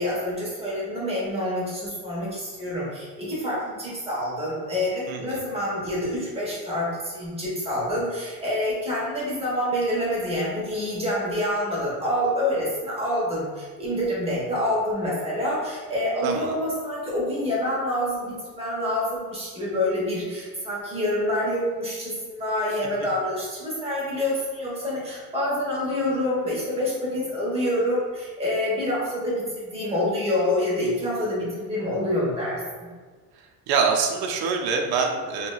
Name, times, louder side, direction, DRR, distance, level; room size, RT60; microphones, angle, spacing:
voice 1, 0.0-32.9, left 1 dB, 15° right, -7 dB, 1.1 m, -27 dB
voice 2, 5.1-5.5 16.2-16.6 33.7-35.5, right 5 dB, 80° right, 2 dB, 0.5 m, -25 dB
3.2 x 2.8 x 2.3 m, 1.5 s
cardioid pair, 135°, 37 cm